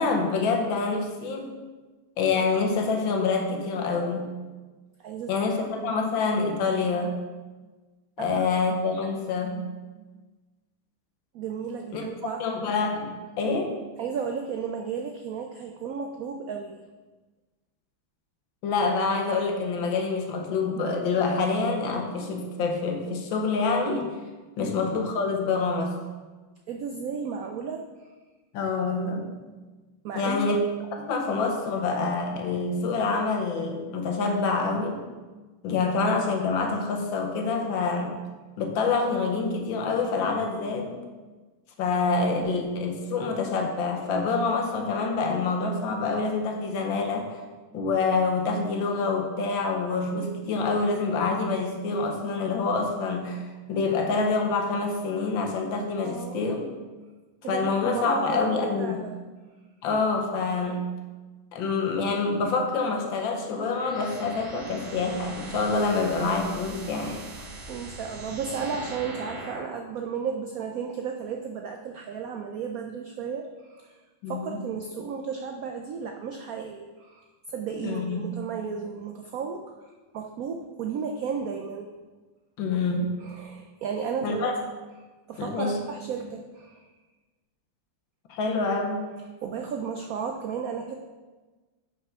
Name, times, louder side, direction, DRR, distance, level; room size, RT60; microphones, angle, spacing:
voice 1, 0.0-1.5 2.2-4.3 5.3-7.2 8.2-9.7 11.9-12.0 12.4-13.7 18.6-24.2 24.6-25.9 28.5-29.3 30.1-30.6 30.9-35.0 35.6-38.1 38.6-41.0 41.8-47.4 47.7-53.4 53.7-56.7 57.5-59.1 59.8-60.8 61.5-67.2 74.2-74.6 77.8-78.2 82.6-83.1 84.2-84.5 85.4-85.8 88.3-89.1, left 4 dB, 75° left, 2 dB, 1.7 m, -26 dB
voice 2, 5.0-5.3 5.8-6.0 8.2-8.5 11.3-12.4 14.0-16.8 24.6-24.9 26.7-28.1 30.0-30.5 56.0-56.5 57.4-59.1 67.0-67.4 67.7-74.0 74.3-81.9 83.2-84.5 85.3-86.9 89.4-90.9, right 6 dB, 90° right, 4 dB, 0.7 m, -34 dB
sound 1, 63.4-69.8, right 2 dB, 55° right, 1.9 m, -41 dB
6.1 x 5.6 x 5.6 m, 1.3 s
omnidirectional pair, 2.2 m